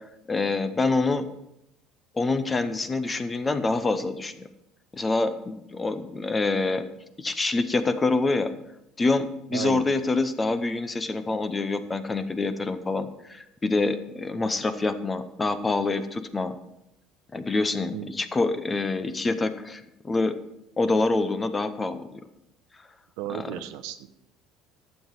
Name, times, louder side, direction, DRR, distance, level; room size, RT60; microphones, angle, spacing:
voice 1, 0.3-1.3 2.1-4.5 4.9-6.8 7.2-8.5 9.0-16.5 17.3-20.4 20.8-22.2 23.3-23.5, left 3 dB, 20° left, 11 dB, 0.8 m, -26 dB
voice 2, 9.5-9.8 17.9-18.1 23.2-24.1, right 12 dB, 85° right, 8 dB, 0.9 m, -34 dB
11.5 x 7.5 x 4.8 m, 0.83 s
cardioid pair, 130°, 0 cm